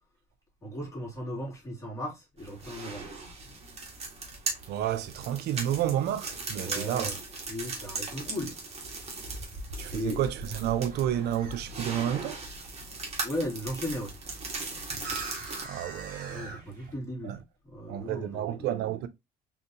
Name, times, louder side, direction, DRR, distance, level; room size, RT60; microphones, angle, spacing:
voice 1, 0.6-3.1 6.6-7.2 7.5-8.6 9.9-10.2 13.2-14.1 16.3-17.3 17.6-18.8, left 1 dB, 20° left, 2.4 m, -36 dB
sound 1, 2.4-15.7, right 3 dB, 40° right, 1.8 m, -38 dB
voice 2, 4.7-7.2 9.8-12.4 15.6-16.6 17.2-17.4 17.9-19.1, right 11 dB, 75° right, 0.6 m, -30 dB
sound 2, 10.8-16.9, right 3 dB, 55° right, 2.2 m, -45 dB
4.0 x 3.7 x 2.8 m
cardioid pair, 110°, 17 cm